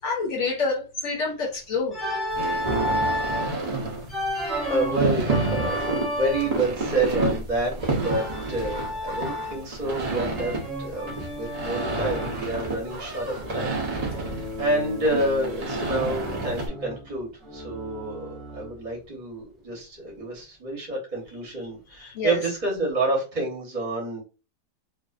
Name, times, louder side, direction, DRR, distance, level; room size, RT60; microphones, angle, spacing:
voice 1, 0.0-2.0 22.1-22.4, left 4 dB, 60° left, 0.9 m, -27 dB
Organ, 1.9-3.5 4.1-6.7 8.0-9.7 10.1-12.4 14.0-15.8 16.1-18.8, equal, ahead, 0.3 m, -32 dB
sound 1, 2.3-16.7, right 3 dB, 90° right, 0.3 m, -30 dB
voice 2, 4.7-7.7 8.0-8.2 8.5-24.2, right 2 dB, 35° right, 0.9 m, -28 dB
2.5 x 2.4 x 2.3 m
omnidirectional pair, 1.6 m